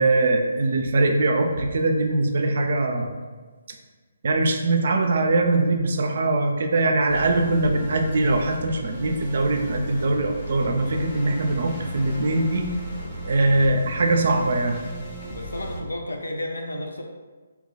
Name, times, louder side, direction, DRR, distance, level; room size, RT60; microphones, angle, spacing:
voice 1, 0.0-3.1 4.2-12.7 13.2-14.8, right 2 dB, 55° right, 4 dB, 0.4 m, -22 dB
sound 1, 7.1-15.8, right 1 dB, 20° left, 0.7 m, -36 dB
voice 2, 15.3-17.0, left 1 dB, 80° left, 2 dB, 0.5 m, -32 dB
2.3 x 2.2 x 3.8 m, 1.4 s
figure-of-eight pair, 140°, 0 cm